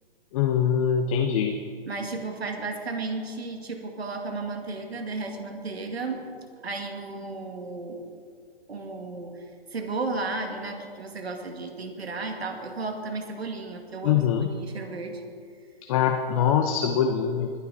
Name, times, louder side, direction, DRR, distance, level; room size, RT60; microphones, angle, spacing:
voice 1, 0.3-1.6 14.0-14.5 15.9-17.6, left 8 dB, 35° left, 4 dB, 0.8 m, -23 dB
voice 2, 1.8-6.2 6.6-8.0 8.7-9.4 9.7-14.2 14.5-15.2, right 3 dB, 90° right, 4 dB, 2.2 m, -33 dB
20.5 x 9.6 x 4.1 m, 2.1 s
hypercardioid pair, 140°, 30 cm